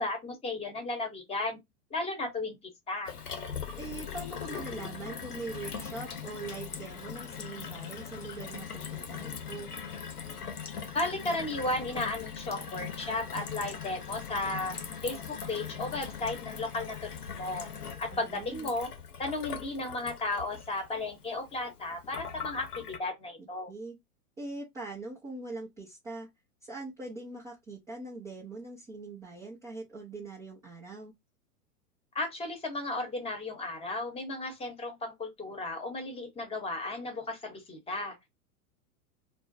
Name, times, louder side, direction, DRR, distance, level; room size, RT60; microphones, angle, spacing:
voice 1, 0.0-1.6 1.9-2.6 2.9-3.1 10.9-14.7 15.0-17.7 18.0-18.9 19.2-23.7 32.1-38.1, left 2 dB, 15° left, 0.9 m, -34 dB
Gurgling / Water tap faucet / Sink (filling or washing), 3.1-23.0, left 7 dB, 85° left, 0.8 m, -40 dB
voice 2, 3.7-9.7 18.1-18.7 23.4-24.0 24.4-26.3 26.6-31.1, right 3 dB, 10° right, 0.3 m, -42 dB
2.5 x 2.0 x 3.8 m
figure-of-eight pair, 100°, 45 cm